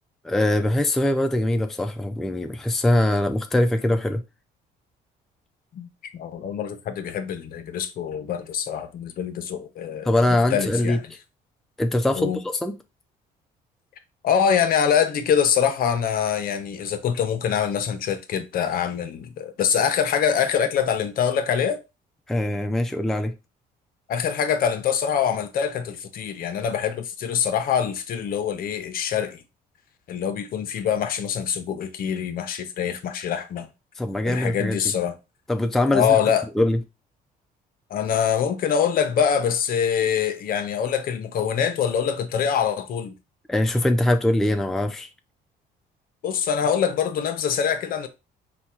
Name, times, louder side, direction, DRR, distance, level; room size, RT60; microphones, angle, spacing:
voice 1, 0.2-4.2 10.0-11.0 11.8-12.8 22.3-23.3 34.0-34.9 35.5-36.2 36.6-36.8 43.5-45.1, left 1 dB, ahead, 0.4 m, -22 dB
voice 2, 6.1-11.0 12.1-12.4 14.2-21.8 24.1-29.4 30.1-33.7 34.2-35.1 35.9-36.5 37.9-43.1 46.2-48.1, left 8 dB, 60° left, 0.7 m, -24 dB
4.3 x 2.3 x 4.3 m
cardioid pair, 110°, 17 cm